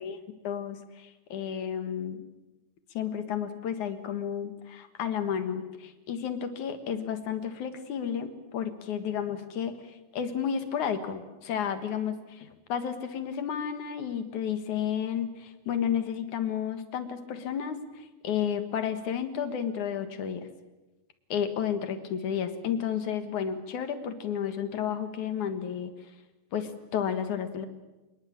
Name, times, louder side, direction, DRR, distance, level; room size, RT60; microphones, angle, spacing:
voice 1, 0.4-2.2 2.9-20.5 21.3-25.9 26.5-27.7, left 8 dB, 60° left, 10 dB, 2.8 m, -32 dB
26.0 x 20.5 x 8.8 m, 1.1 s
omnidirectional pair, 4.2 m